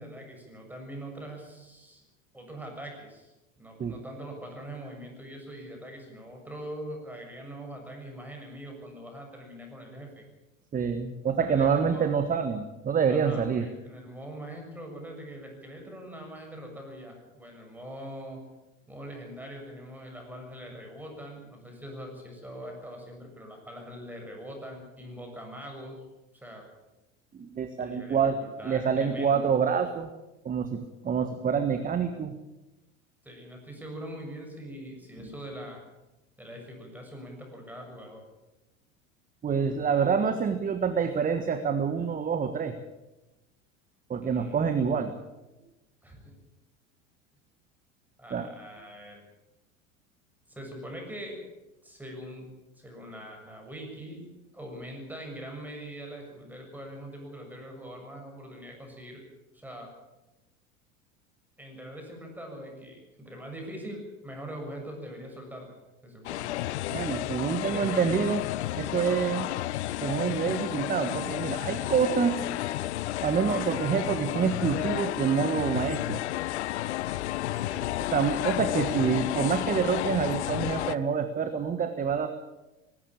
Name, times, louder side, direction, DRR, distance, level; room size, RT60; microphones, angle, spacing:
voice 1, 0.0-2.0 2.3-3.3 3.6-10.2 11.4-12.1 13.1-18.4 18.9-26.0 26.4-26.7 27.8-29.5 33.2-35.8 36.4-38.2 44.2-44.7 46.0-46.2 48.2-49.2 50.5-51.4 51.8-52.5 52.8-54.2 54.5-59.2 59.5-59.9 61.6-65.7 66.0-66.5 67.7-68.1 69.0-69.2 73.4-73.6 77.6-77.9, right 1 dB, 5° right, 1 dB, 6.8 m, -42 dB
voice 2, 10.7-13.7 27.3-28.4 28.6-30.1 30.4-32.4 39.4-42.7 44.1-45.1 48.3-48.5 66.9-68.4 68.7-69.5 70.0-72.4 73.2-76.2 78.1-82.3, right 6 dB, 20° right, 9 dB, 1.4 m, -27 dB
sound 1, 66.2-81.0, left 15 dB, 55° left, 0.7 m, -31 dB
19.0 x 16.5 x 8.8 m, 1.0 s
figure-of-eight pair, 80°, 40 cm